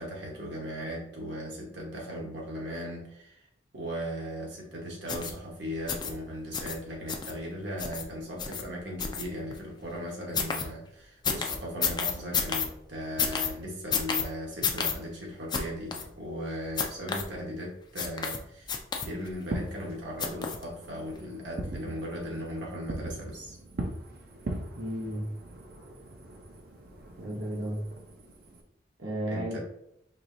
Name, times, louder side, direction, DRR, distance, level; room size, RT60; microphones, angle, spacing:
voice 1, 0.0-3.5 3.7-23.6 29.3-29.6, equal, 70° right, -2 dB, 1.2 m, -38 dB
sound 1, 5.1-5.3 5.9-6.1 6.5-6.8 7.1-7.3 7.8-8.0 8.4-8.6 9.0-9.6 10.3-10.6 11.2-12.7 13.2-13.5 13.9-14.2 14.6-14.9 15.5-15.6 15.9-16.0 16.8-17.2 18.0-18.4 18.7-19.3 20.2-20.6 21.1-21.2, left 6 dB, 25° left, 0.4 m, -29 dB
Fireworks, 19.3-28.6, right 1 dB, 50° right, 0.6 m, -41 dB
voice 2, 24.7-25.3 27.1-27.9 29.0-29.6, right 1 dB, 90° right, -5 dB, 0.9 m, -33 dB
4.7 x 3.1 x 2.6 m, 0.78 s
head